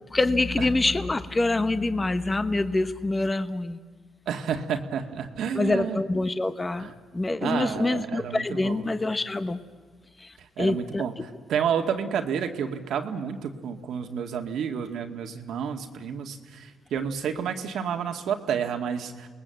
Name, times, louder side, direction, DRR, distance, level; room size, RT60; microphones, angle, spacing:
voice 1, 0.1-3.8 5.5-9.6 10.2-10.3 10.6-11.0, left 2 dB, 20° left, 11 dB, 1.0 m, -26 dB
voice 2, 4.3-6.0 6.8-6.9 7.4-8.9 10.4-19.3, right 7 dB, 75° right, 5 dB, 2.0 m, -30 dB
28.0 x 20.0 x 7.8 m, 1.5 s
cardioid pair, 90°, 0 cm